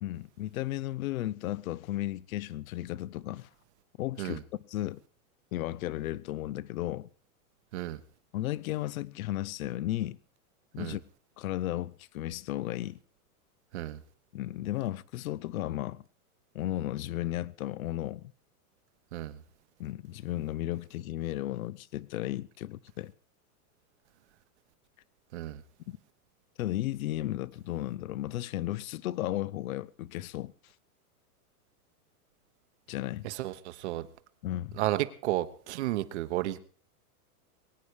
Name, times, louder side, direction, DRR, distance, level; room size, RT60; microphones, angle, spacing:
voice 1, 0.0-3.5 4.0-5.0 5.5-7.1 8.3-10.2 10.7-11.0 11.4-13.0 14.3-16.0 16.5-18.3 19.8-23.1 25.9-26.0 26.6-30.5 32.9-33.3 34.4-34.8, left 14 dB, 70° left, 0.7 m, -34 dB
voice 2, 33.2-34.0 34.8-36.6, right 15 dB, 50° right, 1.2 m, -32 dB
22.5 x 9.7 x 4.8 m
supercardioid pair, 165°, 45 cm